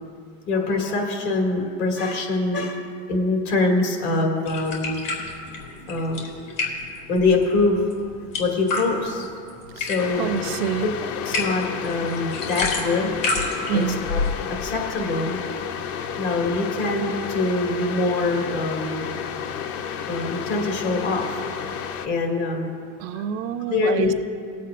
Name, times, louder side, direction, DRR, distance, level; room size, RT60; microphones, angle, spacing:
voice 1, 0.5-2.8 3.1-5.0 5.9-6.2 7.1-7.8 8.4-9.3 9.7-10.3 11.0-13.1 13.7-14.2 14.5-15.4 16.2-19.0 20.1-21.2 22.0-22.7 23.1-23.2 23.7-24.2, left 3 dB, 70° left, 0 dB, 2.4 m, -24 dB
sound 1, 4.4-14.3, left 3 dB, 90° left, 2.5 m, -31 dB
sound 2, 10.0-22.1, left 7 dB, 40° left, 0.5 m, -31 dB
voice 2, 10.2-11.0 13.7-14.0 23.0-24.2, right 8 dB, 60° right, 13 dB, 0.5 m, -26 dB
20.5 x 8.3 x 2.5 m, 2.4 s
supercardioid pair, 125°, 37 cm